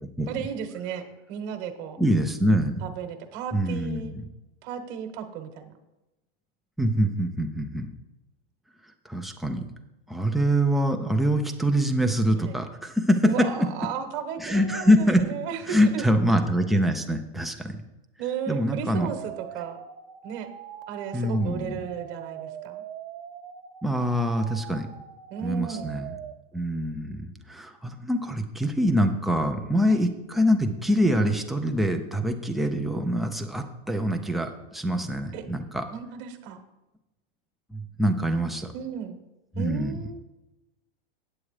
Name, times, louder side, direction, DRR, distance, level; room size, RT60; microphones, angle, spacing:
voice 1, 0.3-2.0 2.8-4.1 4.6-5.7 12.4-12.6 13.2-16.1 18.2-19.8 20.2-20.5 20.9-22.8 25.3-25.9 29.9-30.0 35.3-35.4 35.9-36.6 38.7-39.2 39.5-40.2, right 8 dB, 40° right, 8 dB, 1.2 m, -34 dB
voice 2, 2.0-2.8 3.5-4.2 6.8-7.9 9.1-9.7 10.1-13.7 14.4-15.2 15.7-17.8 18.5-19.1 21.1-21.7 23.8-24.9 25.4-26.1 26.5-35.8 37.7-38.7 39.6-40.0, equal, ahead, 4 dB, 0.3 m, -24 dB
sound 1, 19.0-26.3, right 9 dB, 65° right, 1.0 m, -42 dB
8.6 x 7.9 x 4.8 m, 0.98 s
supercardioid pair, 150°, 30 cm